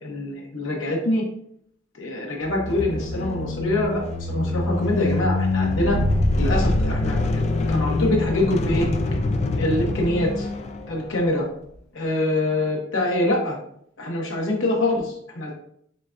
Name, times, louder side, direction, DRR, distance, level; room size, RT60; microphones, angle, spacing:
voice 1, 0.0-1.2 1.9-6.0 6.4-8.9 9.6-10.5 10.9-11.5 11.9-13.6 14.0-15.5, left 1 dB, 90° left, -1 dB, 1.0 m, -24 dB
sound 1, 2.4-11.2, left 2 dB, 35° left, 0.3 m, -24 dB
6.2 x 2.2 x 2.5 m, 0.68 s
head